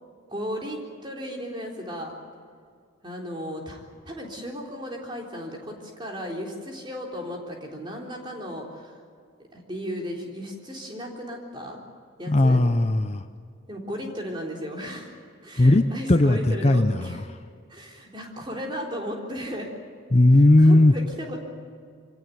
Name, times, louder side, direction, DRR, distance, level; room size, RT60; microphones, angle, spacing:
voice 1, 0.3-2.1 3.0-9.0 9.5-11.8 12.2-12.6 13.7-15.1 15.4-17.3 17.7-19.7 20.6-21.4, equal, 25° right, 0 dB, 3.7 m, -35 dB
voice 2, 12.3-13.2 15.6-17.2 20.1-20.9, left 1 dB, 30° left, 9 dB, 0.6 m, -17 dB
25.0 x 17.5 x 9.3 m, 2.1 s
head